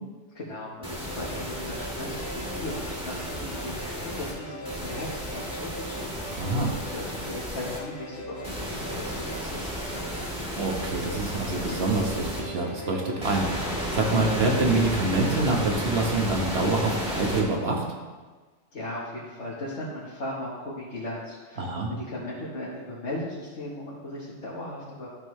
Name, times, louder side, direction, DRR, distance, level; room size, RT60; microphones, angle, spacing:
voice 1, 0.3-6.5 6.8-10.1 18.7-25.1, left 1 dB, 70° left, -7 dB, 1.6 m, -37 dB
sound 1, 0.8-16.1, left 1 dB, 40° left, 1.3 m, -41 dB
sound 2, 0.8-4.3 4.6-7.8 8.4-12.4 13.2-17.4, equal, 5° right, 1.7 m, -33 dB
voice 2, 6.4-6.7 10.5-17.9 21.6-21.9, right 2 dB, 60° right, 1 dB, 1.4 m, -26 dB
12.0 x 5.3 x 3.2 m, 1.4 s
omnidirectional pair, 1.2 m